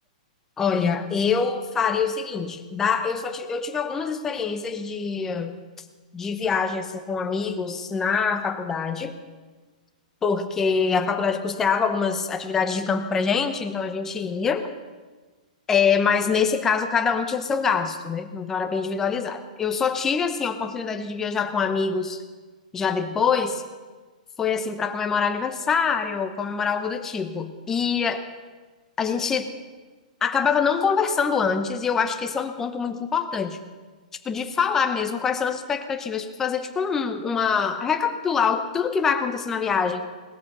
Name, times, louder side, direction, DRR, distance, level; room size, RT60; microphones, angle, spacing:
voice 1, 0.6-5.6 6.1-9.1 10.2-14.7 15.7-22.2 22.7-23.6 24.4-28.2 29.0-29.5 30.2-33.6 34.3-40.1, left 6 dB, 10° left, 7 dB, 0.7 m, -24 dB
18.5 x 13.5 x 5.4 m, 1.4 s
hypercardioid pair, 175°, 4 cm